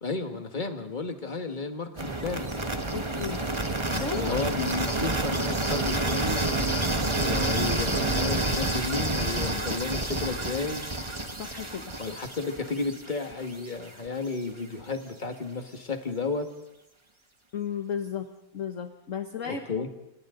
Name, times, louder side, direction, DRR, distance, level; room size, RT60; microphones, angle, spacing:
voice 1, 0.0-2.5 4.1-6.5 7.3-10.9 12.0-16.5 19.4-19.9, left 4 dB, 25° left, 5 dB, 1.9 m, -32 dB
sound 1, 2.0-13.9, right 2 dB, 15° right, 1.5 m, -29 dB
voice 2, 2.9-3.4 3.9-4.3 9.4-9.8 11.3-11.9 17.5-19.6, left 7 dB, 50° left, 6 dB, 1.4 m, -34 dB
30.0 x 28.0 x 3.9 m, 0.87 s
omnidirectional pair, 1.9 m